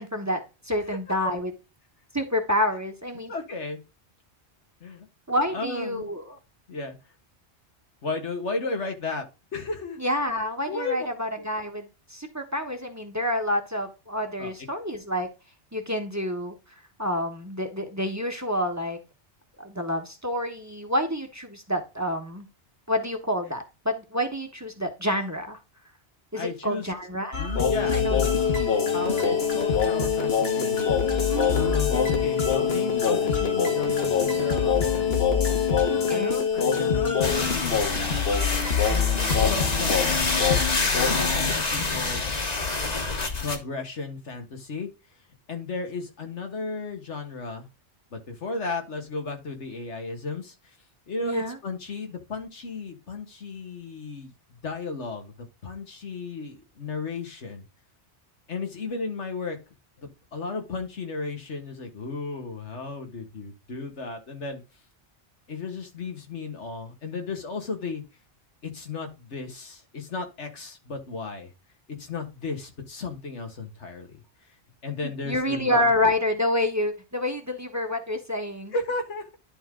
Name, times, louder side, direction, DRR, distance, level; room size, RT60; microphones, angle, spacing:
voice 1, 0.0-1.5 2.1-3.3 5.3-6.4 10.0-15.3 15.7-16.5 17.0-19.0 19.6-22.5 22.9-25.6 26.3-27.5 27.8-28.2 31.3-32.1 35.9-36.4 51.2-51.6 75.0-78.8, left 1 dB, 15° right, 1.2 m, -28 dB
voice 2, 3.3-3.8 4.8-5.1 5.5-6.1 6.7-7.0 8.0-9.3 9.5-10.0 10.7-11.1 11.4-11.5 14.4-14.5 26.4-26.9 27.7-28.2 28.9-30.8 31.5-35.1 36.0-38.2 38.8-40.5 40.9-42.3 43.4-44.9 45.5-47.7 48.1-50.8 51.1-54.3 54.6-55.3 55.6-57.6 58.5-59.6 60.0-64.6 65.5-68.0 68.6-71.5 72.0-74.2 74.8-75.9 78.7-79.3, left 3 dB, 90° left, 2.0 m, -34 dB
sound 1, 27.3-41.5, left 6 dB, 60° left, 1.6 m, -24 dB
sound 2, 37.2-43.6, left 3 dB, 40° left, 1.3 m, -27 dB
11.0 x 3.8 x 3.7 m
omnidirectional pair, 1.2 m